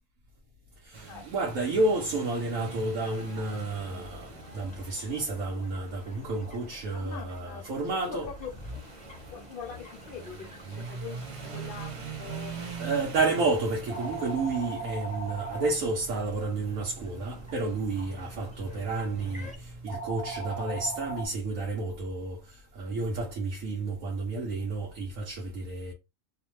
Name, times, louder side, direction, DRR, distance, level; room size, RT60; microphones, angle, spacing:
voice 1, 0.8-8.3 12.8-25.9, right 3 dB, 90° right, 1.1 m, -31 dB
sound 1, 0.9-19.8, right 5 dB, 55° right, 0.3 m, -44 dB
sound 2, 1.8-19.6, equal, 5° left, 0.8 m, -51 dB
voice 2, 6.9-7.6 7.9-8.5 9.3-12.6 18.4-18.5, left 7 dB, 60° left, 0.6 m, -43 dB
sound 3, 10.9-21.3, right 3 dB, 35° right, 0.8 m, -41 dB
2.8 x 2.1 x 3.1 m
omnidirectional pair, 1.4 m